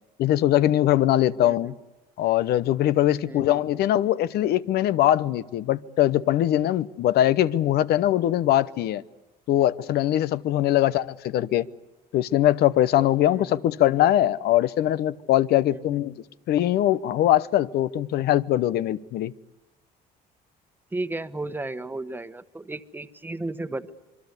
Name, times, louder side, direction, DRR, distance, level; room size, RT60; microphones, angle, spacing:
voice 1, 0.2-1.7 2.2-9.0 9.5-11.7 12.1-16.1 16.5-19.3, left 13 dB, 70° left, 0.9 m, -22 dB
voice 2, 1.4-1.7 3.3-3.8 13.3-13.6 15.7-16.1 20.9-23.9, right 2 dB, 10° right, 1.2 m, -34 dB
26.5 x 23.0 x 8.2 m
cardioid pair, 110°, 17 cm